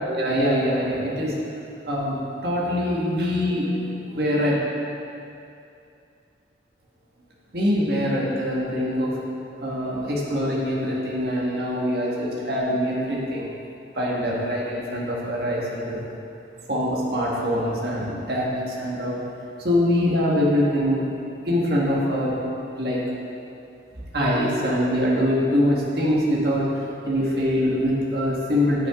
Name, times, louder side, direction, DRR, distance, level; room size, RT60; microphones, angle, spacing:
voice 1, 0.1-1.3 1.9-3.8 4.1-4.5 7.5-9.1 9.6-13.5 13.9-16.0 16.7-19.2 19.6-21.1 21.5-22.3 22.8-23.0 24.1-26.7 27.0-28.9, equal, 55° right, -4 dB, 1.6 m, -23 dB
14.0 x 6.1 x 3.7 m, 2.6 s
head